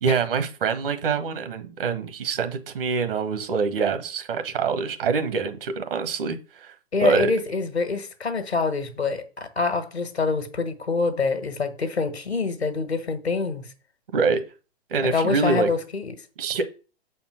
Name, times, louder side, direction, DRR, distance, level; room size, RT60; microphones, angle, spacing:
voice 1, 0.0-6.7 7.0-7.3 14.1-14.4 14.9-15.7 16.4-16.6, right 5 dB, 60° right, 1.4 m, -25 dB
voice 2, 6.9-13.7 15.0-16.1, left 4 dB, 80° left, 1.5 m, -26 dB
7.2 x 4.4 x 5.8 m
figure-of-eight pair, 105°, 32 cm